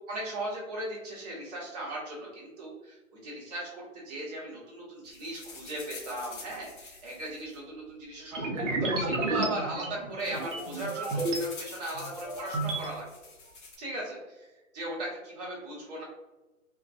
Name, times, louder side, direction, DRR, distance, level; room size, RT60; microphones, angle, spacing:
voice 1, 0.1-13.0 13.8-14.5 14.7-16.0, right 1 dB, 30° right, -6 dB, 1.1 m, -38 dB
sound 1, 5.0-8.3 9.1-9.2 9.4-9.6 9.9-13.7, left 4 dB, 40° left, 0.6 m, -47 dB
sound 2, 8.3-11.4 11.9-12.9, right 2 dB, 60° right, 0.7 m, -32 dB
2.5 x 2.3 x 2.4 m, 1.1 s
figure-of-eight pair, 135°, 42 cm